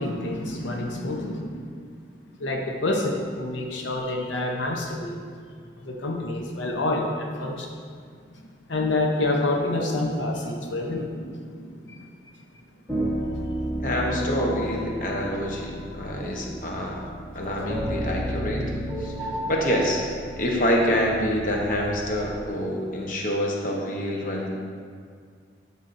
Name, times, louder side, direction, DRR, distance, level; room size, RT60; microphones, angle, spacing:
voice 1, 0.0-1.7 2.4-5.2 5.8-7.7 8.7-12.0, left 2 dB, 85° left, 1 dB, 0.8 m, -28 dB
sound 1, 12.9-22.5, equal, 10° left, 1.5 m, -32 dB
voice 2, 13.8-17.0 17.3-18.7 19.0-20.0 20.4-24.5, equal, 45° left, -1 dB, 0.9 m, -26 dB
11.5 x 5.5 x 2.6 m, 2.1 s
head